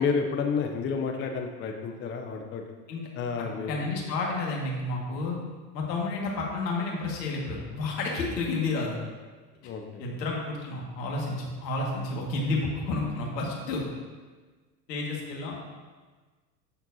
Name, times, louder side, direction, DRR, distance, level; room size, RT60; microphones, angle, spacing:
voice 1, 0.0-2.6 3.2-3.8 9.6-10.0, left 5 dB, 25° left, 4 dB, 0.6 m, -30 dB
voice 2, 3.7-5.4 5.7-9.0 10.0-13.8 14.9-15.6, left 3 dB, 75° left, -2 dB, 1.9 m, -30 dB
11.5 x 4.5 x 2.7 m, 1.4 s
hypercardioid pair, 90°, 50 cm